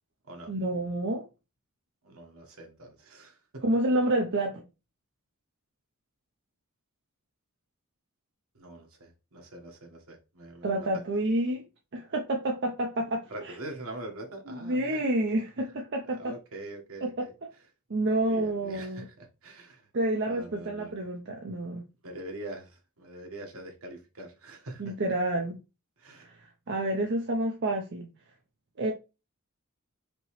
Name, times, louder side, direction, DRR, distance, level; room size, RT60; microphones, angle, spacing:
voice 1, 0.5-1.3 3.6-4.6 10.6-11.6 11.9-13.2 14.5-16.3 17.0-17.1 17.9-19.0 19.9-21.8 24.8-25.6 26.1-28.1 28.8-28.9, right 1 dB, 55° right, 0.7 m, -29 dB
voice 2, 2.0-3.6 8.5-11.0 13.3-15.0 16.1-17.3 18.2-19.9 20.3-21.1 22.0-25.0 26.0-26.3, right 1 dB, 75° right, 1.4 m, -44 dB
5.2 x 3.0 x 3.1 m
head